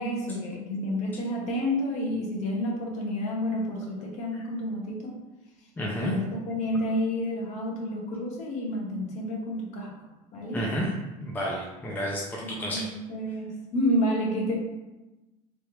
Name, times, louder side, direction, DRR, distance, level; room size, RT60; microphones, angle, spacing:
voice 1, 0.0-5.2 6.0-9.9 10.3-10.6 12.4-14.5, left 1 dB, 50° left, -1 dB, 1.0 m, -30 dB
voice 2, 5.8-6.1 10.5-10.9 11.2-12.9, equal, 10° left, -3 dB, 0.5 m, -31 dB
3.3 x 3.3 x 3.0 m, 1.1 s
cardioid pair, 145°, 15 cm